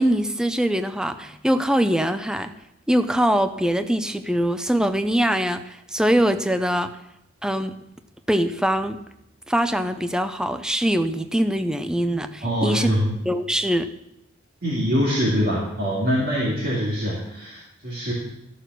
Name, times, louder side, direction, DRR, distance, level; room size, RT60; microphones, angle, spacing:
voice 1, 0.0-2.5 2.9-6.9 7.4-7.8 8.3-9.0 9.5-12.9 13.3-13.9, equal, 5° right, 9 dB, 0.4 m, -22 dB
voice 2, 12.4-13.1 14.6-18.1, equal, 45° right, -5 dB, 2.3 m, -24 dB
13.0 x 6.8 x 6.1 m, 0.83 s
head